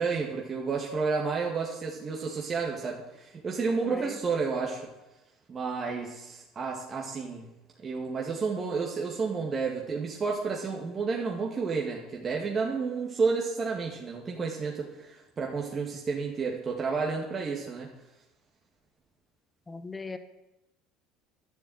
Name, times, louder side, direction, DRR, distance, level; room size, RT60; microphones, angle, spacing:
voice 1, 0.0-4.8 5.5-7.5 7.8-17.9, right 4 dB, 35° right, -1 dB, 2.0 m, -31 dB
voice 2, 3.8-4.2 19.7-20.2, left 3 dB, 20° left, 9 dB, 1.5 m, -39 dB
11.5 x 7.2 x 8.9 m, 0.98 s
supercardioid pair, 95°, 0 cm